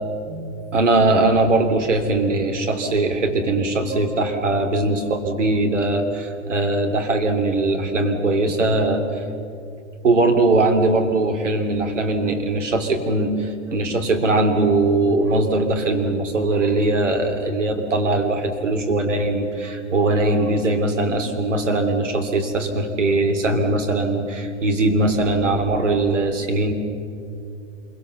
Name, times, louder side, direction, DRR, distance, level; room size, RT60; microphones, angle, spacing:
voice 1, 0.3-9.2 10.0-26.7, right 2 dB, 75° right, 5 dB, 3.1 m, -20 dB
27.0 x 23.5 x 7.0 m, 2.5 s
figure-of-eight pair, 95°, 37 cm